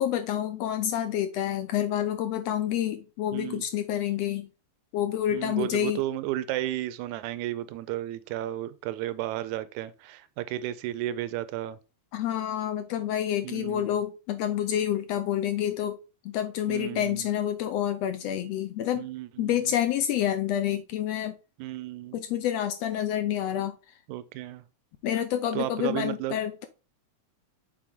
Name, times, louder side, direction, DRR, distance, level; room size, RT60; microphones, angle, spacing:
voice 1, 0.0-4.5 4.9-6.0 12.1-16.0 16.2-19.1 19.4-21.4 22.1-23.7 25.0-26.7, left 11 dB, 80° left, 1.6 m, -28 dB
voice 2, 3.3-3.7 5.3-11.8 13.4-13.9 16.7-17.3 19.0-19.7 21.6-22.2 24.1-24.6 25.5-26.4, right 14 dB, 85° right, 1.9 m, -33 dB
7.6 x 4.2 x 3.5 m
omnidirectional pair, 3.3 m